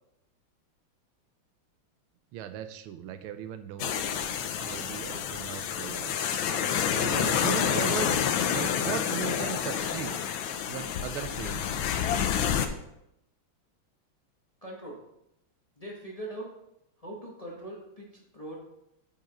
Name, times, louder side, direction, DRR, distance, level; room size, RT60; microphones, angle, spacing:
voice 1, 2.3-4.1 4.6-6.2 6.9-8.2 8.5-10.2 10.7-11.7, right 10 dB, 85° right, 10 dB, 1.5 m, -37 dB
sound 1, 3.8-12.7, left 8 dB, 75° left, 1.4 m, -28 dB
voice 2, 14.6-15.0 15.8-16.5 17.0-18.6, right 1 dB, 25° left, -2 dB, 0.9 m, -41 dB
8.5 x 5.6 x 4.0 m, 0.83 s
omnidirectional pair, 2.3 m